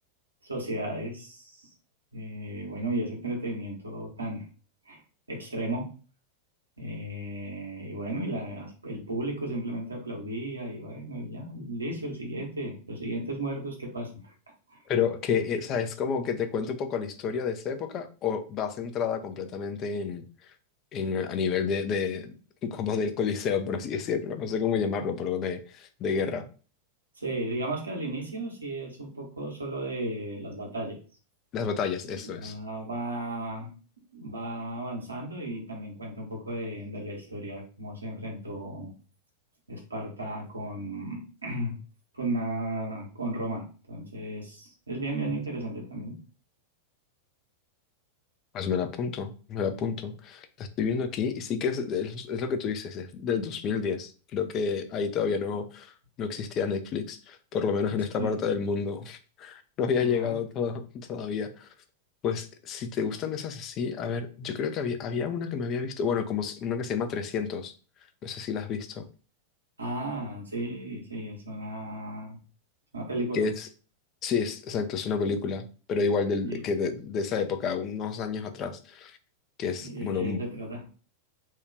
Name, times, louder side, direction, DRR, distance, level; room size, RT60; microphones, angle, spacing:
voice 1, 0.4-1.7 2.1-4.5 4.9-5.0 5.3-5.9 6.8-14.3 14.7-14.8 15.3-15.4 27.2-31.0 32.2-33.7 34.1-38.9 39.7-41.7 42.1-46.2 57.9-58.3 60.0-60.4 69.8-72.4 72.9-73.5 76.4-76.6 79.8-80.8, right 1 dB, 80° right, 1 dB, 1.0 m, -34 dB
voice 2, 14.9-20.2 20.9-22.3 22.6-26.5 31.5-32.6 45.2-45.3 48.5-61.7 62.2-67.7 68.2-69.0 73.3-73.7 74.2-79.2 79.6-80.4, left 6 dB, 35° left, 9 dB, 0.4 m, -30 dB
3.1 x 2.3 x 3.3 m, 0.37 s
figure-of-eight pair, 90°, 0 cm